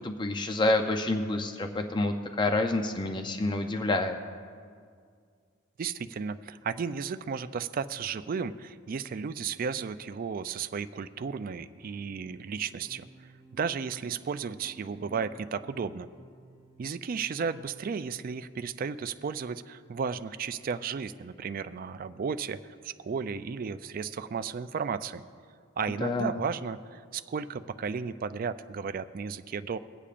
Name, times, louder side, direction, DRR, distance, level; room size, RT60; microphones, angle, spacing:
voice 1, 0.0-4.2 26.0-26.4, left 2 dB, 25° left, 5 dB, 0.5 m, -28 dB
voice 2, 5.8-13.1 13.5-16.1 16.8-22.6 22.8-25.2 25.8-29.8, right 6 dB, 45° right, 12 dB, 0.3 m, -34 dB
sound 1, 11.8-17.5, right 2 dB, ahead, 1.3 m, -55 dB
23.0 x 8.5 x 2.5 m, 2.1 s
head